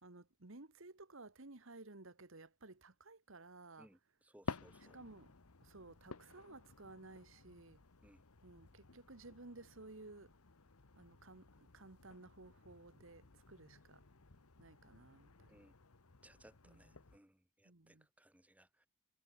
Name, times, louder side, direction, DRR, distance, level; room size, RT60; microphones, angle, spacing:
voice 1, 0.0-3.9 4.9-5.3 5.6-7.8 8.4-10.3 11.0-14.0 14.6-15.6 16.7-17.0 17.6-18.1, right 2 dB, 60° right, 1.6 m, -56 dB
voice 2, 3.8-5.0 8.0-8.2 15.5-15.7 16.2-18.9, right 1 dB, 5° right, 1.0 m, -65 dB
sound 1, 4.4-17.2, left 3 dB, 85° left, 1.3 m, -54 dB
head